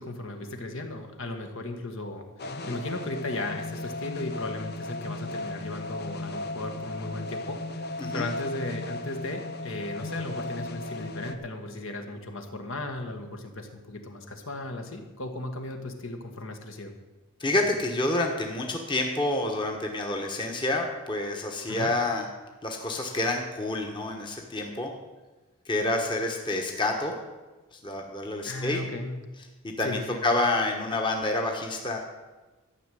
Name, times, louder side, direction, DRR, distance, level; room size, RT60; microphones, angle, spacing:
voice 1, 0.0-16.9 21.7-21.9 28.4-29.2 29.8-30.3, left 2 dB, 60° left, 4 dB, 1.6 m, -36 dB
sound 1, 2.4-11.4, left 2 dB, 45° left, 0.8 m, -36 dB
voice 2, 17.4-22.2 22.6-24.9 25.7-27.1 27.7-28.8 29.6-32.0, left 2 dB, 20° left, 2 dB, 1.3 m, -28 dB
13.5 x 6.4 x 9.1 m, 1.2 s
head